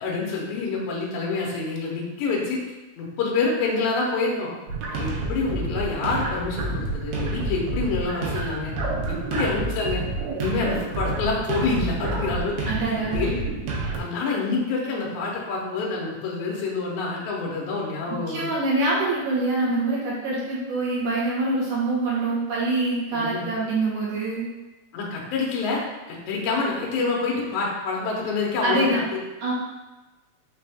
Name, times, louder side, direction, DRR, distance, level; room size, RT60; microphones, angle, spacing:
voice 1, 0.0-2.6 3.0-4.5 4.9-8.7 9.1-10.0 10.3-13.4 14.0-18.5 23.1-23.5 24.9-25.8 26.1-29.2, left 4 dB, 70° left, -3 dB, 2.0 m, -27 dB
sound 1, 4.7-14.0, right 2 dB, 90° right, 2.5 m, -29 dB
voice 2, 12.6-13.2 18.1-24.5 28.6-29.0 29.4-29.5, right 2 dB, 70° right, -6 dB, 1.9 m, -25 dB
5.8 x 2.5 x 3.4 m, 1.1 s
omnidirectional pair, 4.1 m